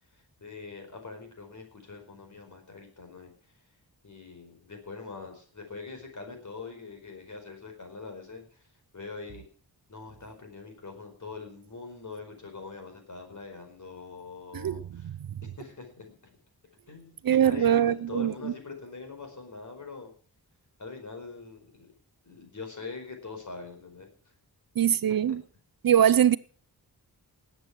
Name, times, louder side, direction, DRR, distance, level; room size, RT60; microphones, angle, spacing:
voice 1, 0.1-3.3 4.0-8.7 8.9-9.4 9.9-15.1 15.4-16.1 16.9-20.1 20.8-21.9 22.2-24.1 25.3-25.4, left 4 dB, 50° left, 4.8 m, -43 dB
voice 2, 14.5-15.1 17.2-18.5 24.8-25.4 25.8-26.4, right 9 dB, 60° right, 0.6 m, -23 dB
19.5 x 8.1 x 6.1 m
wide cardioid pair, 170°, 39 cm